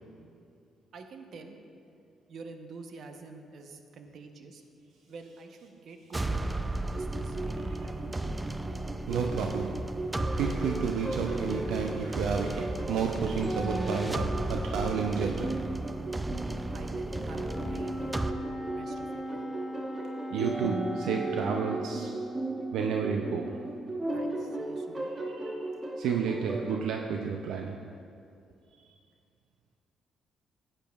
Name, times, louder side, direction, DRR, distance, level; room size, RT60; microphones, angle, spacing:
voice 1, 0.9-1.6 2.3-4.6 5.1-8.2 16.7-17.9 18.7-19.5 24.1-25.1, right 4 dB, 65° right, 5 dB, 0.8 m, -48 dB
sound 1, 6.1-18.3, right 2 dB, 15° right, 0.4 m, -35 dB
sound 2, 6.9-26.8, right 1 dB, 35° right, 1.1 m, -37 dB
voice 2, 7.6-7.9 9.1-9.8 10.4-15.6 20.3-22.1 22.7-23.7 25.3-27.9 28.8-28.9, right 6 dB, 85° right, 3 dB, 0.4 m, -31 dB
Wind instrument woodwind instrument, 17.4-21.9, equal, 15° left, 1.3 m, -38 dB
13.0 x 8.9 x 2.3 m, 2.5 s
cardioid pair, 90°, 0 cm